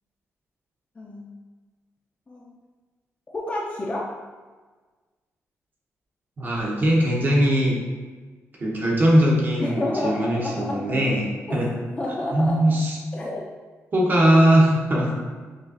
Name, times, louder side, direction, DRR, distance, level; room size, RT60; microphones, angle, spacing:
voice 1, 1.0-1.3 2.3-2.5 3.3-4.2 9.6-11.1 11.5-11.6 12.0-12.8 13.1-13.4, left 1 dB, 25° left, -4 dB, 0.5 m, -29 dB
voice 2, 6.4-7.8 8.6-11.7 12.3-13.0 13.9-15.1, right 1 dB, 40° right, -2 dB, 0.8 m, -20 dB
5.0 x 2.5 x 2.5 m, 1.4 s
cardioid pair, 105°, 5 cm